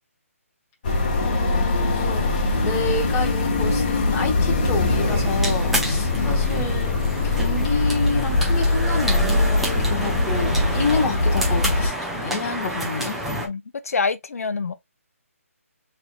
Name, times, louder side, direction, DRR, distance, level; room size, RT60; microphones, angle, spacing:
sound 1, 0.8-11.9, left 2 dB, 35° left, 1.3 m, -22 dB
voice 1, 1.2-6.9 7.2-13.2, left 4 dB, 15° left, 1.2 m, -29 dB
sound 2, 5.0-13.5, right 1 dB, ahead, 0.6 m, -29 dB
voice 2, 6.0-6.3 13.4-14.7, left 4 dB, 75° left, 0.6 m, -27 dB
6.5 x 3.3 x 2.3 m
hypercardioid pair, 170°, 8 cm